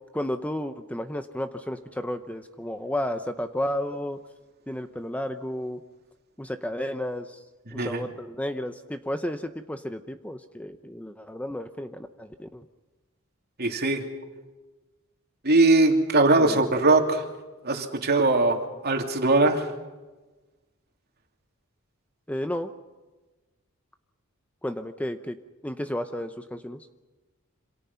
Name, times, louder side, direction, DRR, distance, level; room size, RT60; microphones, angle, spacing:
voice 1, 0.1-4.2 4.7-5.8 6.4-7.4 7.7-12.7 16.4-16.7 22.3-22.7 24.6-25.4 25.6-26.9, left 1 dB, 5° left, 8 dB, 0.8 m, -32 dB
voice 2, 7.7-8.0 13.6-14.0 15.4-17.2 17.6-19.7, right 2 dB, 50° right, 3 dB, 3.0 m, -21 dB
27.0 x 27.0 x 5.7 m, 1.2 s
head